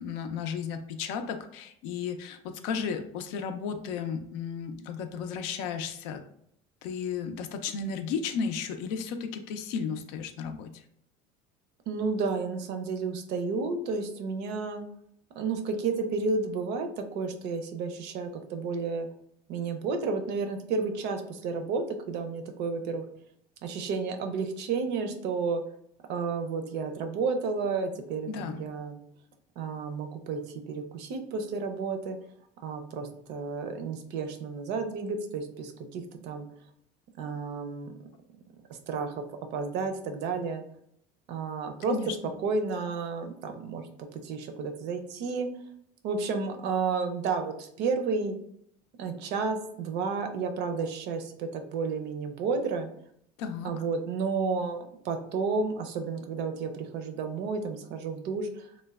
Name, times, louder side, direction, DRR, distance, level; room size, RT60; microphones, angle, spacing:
voice 1, 0.0-6.2 6.8-10.7 28.3-28.6 41.9-42.3 53.4-53.7, left 6 dB, 80° left, 7 dB, 0.4 m, -34 dB
voice 2, 11.9-14.8 15.3-16.9 17.1-19.1 19.5-23.0 23.6-25.6 26.1-29.0 29.6-32.2 32.6-36.5 37.2-37.9 38.7-39.2 39.5-40.6 41.3-42.0 42.4-45.5 46.0-48.4 49.0-52.9 53.6-58.7, right 4 dB, 65° right, 7 dB, 0.5 m, -31 dB
3.1 x 2.1 x 2.3 m, 0.70 s
supercardioid pair, 110°, 19 cm